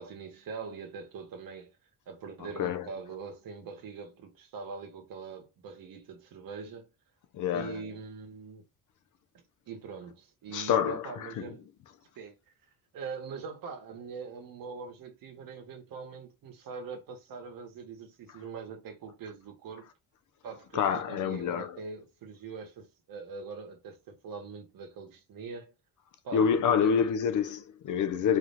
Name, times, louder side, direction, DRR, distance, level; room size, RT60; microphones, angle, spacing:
voice 1, 0.0-1.8 2.1-6.9 7.5-8.6 9.3-11.7 12.2-12.4 12.9-19.9 20.4-25.7 26.2-26.9, right 5 dB, 60° right, 1.8 m, -43 dB
voice 2, 2.4-2.9 7.3-7.8 10.5-11.5 18.3-18.4 20.7-21.8 26.3-28.4, left 7 dB, 50° left, 0.7 m, -28 dB
4.9 x 3.5 x 2.8 m
cardioid pair, 175°, 38 cm